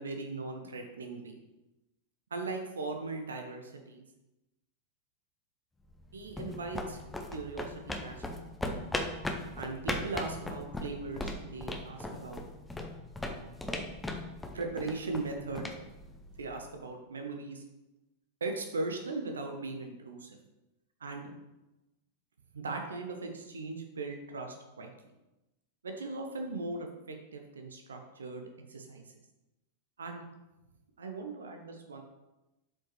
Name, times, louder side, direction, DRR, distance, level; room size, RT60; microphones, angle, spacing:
voice 1, 0.0-1.4 2.3-4.1 6.1-7.0 7.3-8.4 9.6-12.4 13.7-13.8 14.5-15.7 16.4-17.6 18.4-20.4 21.0-21.2 22.5-24.9 25.8-29.2 30.0-30.2 31.0-32.0, right 3 dB, 70° right, 4 dB, 0.9 m, -39 dB
sound 1, 5.9-16.7, left 1 dB, 10° left, 0.7 m, -39 dB
7.4 x 5.2 x 3.2 m, 1.0 s
figure-of-eight pair, 90°, 0 cm